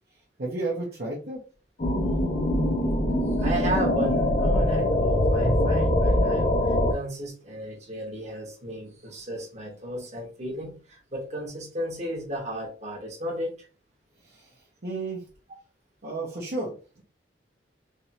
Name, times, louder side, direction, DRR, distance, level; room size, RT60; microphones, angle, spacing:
voice 1, 0.4-1.4 14.2-14.5 14.8-15.2 16.0-17.0, right 2 dB, 60° right, 1.1 m, -32 dB
sound 1, 1.8-6.9, left 1 dB, 40° left, 0.7 m, -23 dB
voice 2, 3.4-13.7, equal, 40° right, 1.3 m, -34 dB
3.5 x 3.2 x 2.9 m
head